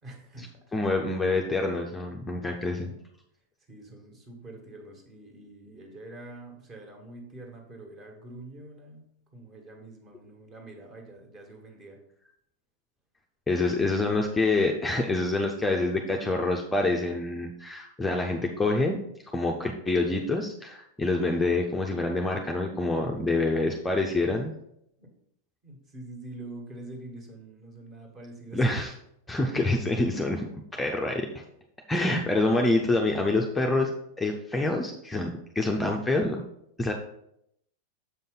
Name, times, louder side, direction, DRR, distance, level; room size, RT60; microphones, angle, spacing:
voice 1, 0.0-0.6 2.5-3.0 3.7-9.0 9.3-12.0 25.0-25.1 25.6-28.7 32.1-32.4 36.8-36.9, right 2 dB, 30° right, 2 dB, 1.7 m, -45 dB
voice 2, 0.7-2.9 13.5-19.0 19.3-24.5 28.5-28.9 29.3-31.3 31.9-33.9 34.2-36.4 36.8-36.9, left 2 dB, 10° left, 1 dB, 0.6 m, -26 dB
6.9 x 5.3 x 3.9 m, 0.76 s
figure-of-eight pair, 90°, 0 cm